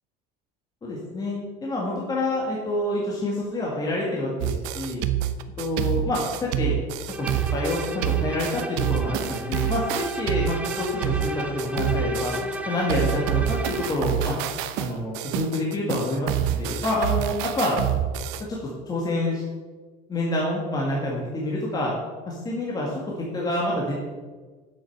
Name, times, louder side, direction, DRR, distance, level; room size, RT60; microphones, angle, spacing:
voice 1, 0.8-5.0 5.6-6.8 7.2-12.3 12.7-14.4 14.8-17.8 18.5-18.6 18.9-19.4 20.1-21.9 22.3-22.9 23.3-23.9, left 1 dB, 20° left, -4 dB, 1.8 m, -27 dB
sound 1, 4.4-12.6 12.9-18.4, right 11 dB, 75° right, 0.8 m, -27 dB
Bowed string instrument, 7.1-14.1, equal, 5° right, 0.6 m, -33 dB
8.1 x 7.9 x 6.6 m, 1.4 s
cardioid pair, 155°, 20 cm